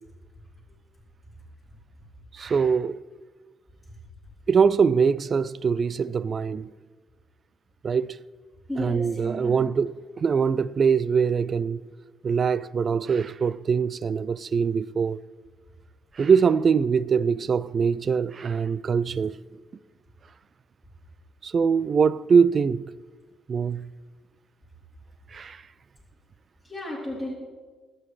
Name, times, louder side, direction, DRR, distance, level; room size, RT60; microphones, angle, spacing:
voice 1, 2.4-3.0 4.5-6.7 7.8-8.2 8.8-11.8 12.2-15.2 16.2-19.3 21.4-22.8 23.5-23.9 25.3-25.6, right 6 dB, 45° right, 0.3 m, -23 dB
voice 2, 8.7-9.7 26.6-27.3, left 1 dB, ahead, 3.5 m, -34 dB
23.0 x 7.8 x 3.3 m
cardioid pair, 90°, 0 cm